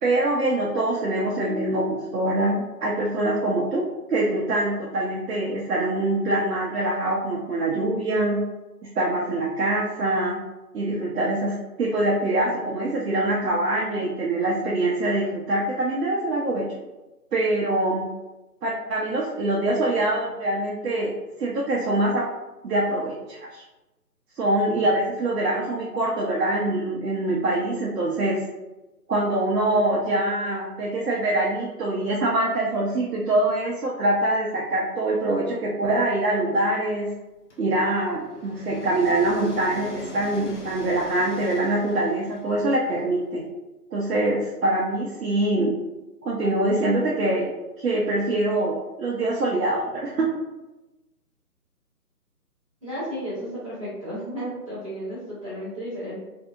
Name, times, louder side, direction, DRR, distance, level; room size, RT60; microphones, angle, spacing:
voice 1, 0.0-3.8 4.1-8.4 9.0-10.4 10.7-16.7 17.3-18.0 18.6-21.1 21.4-22.3 22.6-23.6 24.4-28.4 29.1-37.1 37.6-43.4 43.9-45.7 46.2-47.5 47.8-50.3, right 1 dB, 65° right, -3 dB, 0.7 m, -24 dB
sound 1, 37.5-43.4, left 1 dB, 50° left, 0.7 m, -43 dB
voice 2, 52.8-56.2, equal, 20° right, -12 dB, 0.8 m, -33 dB
2.7 x 2.6 x 2.3 m, 1.1 s
figure-of-eight pair, 160°, 48 cm